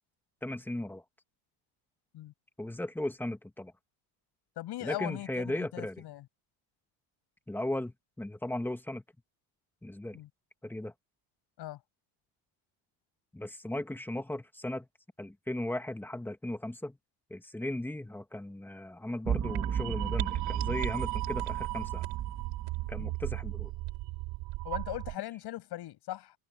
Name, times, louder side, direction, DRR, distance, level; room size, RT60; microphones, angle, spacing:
voice 1, 0.4-1.0 2.6-3.7 4.8-6.0 7.5-9.0 9.8-10.2 10.6-10.9 13.3-14.9 15.2-17.0 17.3-22.0 22.9-23.7, left 1 dB, 5° left, 1.6 m, -37 dB
voice 2, 4.6-6.2 10.1-10.3 11.6-11.8 23.0-23.1 24.6-26.3, left 15 dB, 60° left, 6.8 m, -39 dB
sound 1, 19.3-23.6, right 8 dB, 35° right, 6.9 m, -35 dB
sound 2, 19.4-25.2, right 21 dB, 80° right, 4.4 m, -36 dB
cardioid pair, 120°, 44 cm